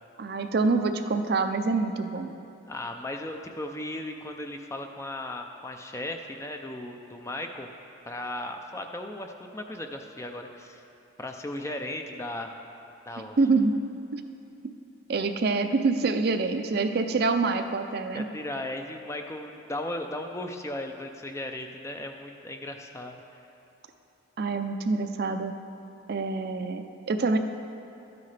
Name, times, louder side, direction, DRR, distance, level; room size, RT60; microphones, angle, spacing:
voice 1, 0.2-2.3 13.4-13.8 14.1-14.2 15.1-18.3 24.4-25.5 26.1-27.4, right 3 dB, 50° right, 7 dB, 0.4 m, -26 dB
voice 2, 2.7-7.7 8.0-10.8 11.2-12.6 13.1-13.4 18.1-23.2, left 1 dB, 15° left, 4 dB, 0.4 m, -36 dB
12.0 x 9.4 x 3.3 m, 2.8 s
head